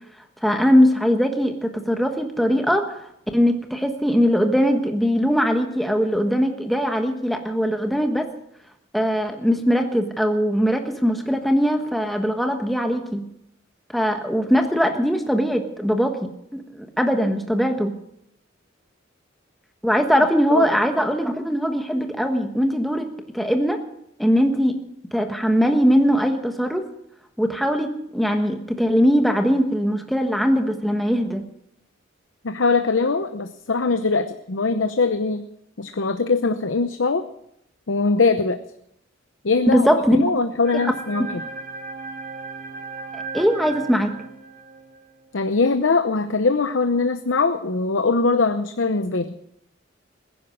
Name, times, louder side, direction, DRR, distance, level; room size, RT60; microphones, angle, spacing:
voice 1, 0.4-3.1 3.3-8.3 8.9-13.2 13.9-17.9 19.8-23.1 23.3-23.8 24.2-24.7 25.1-26.8 27.4-31.4 39.7-40.2 40.8-40.9 43.1-44.1, equal, ahead, 4 dB, 1.3 m, -21 dB
voice 2, 32.4-35.4 35.8-37.2 37.9-38.6 39.4-39.9 40.1-41.3 45.3-49.3, left 4 dB, 75° left, 9 dB, 0.8 m, -21 dB
sound 1, 40.6-45.1, right 4 dB, 50° right, 2.9 m, -36 dB
20.5 x 10.5 x 6.5 m, 0.76 s
head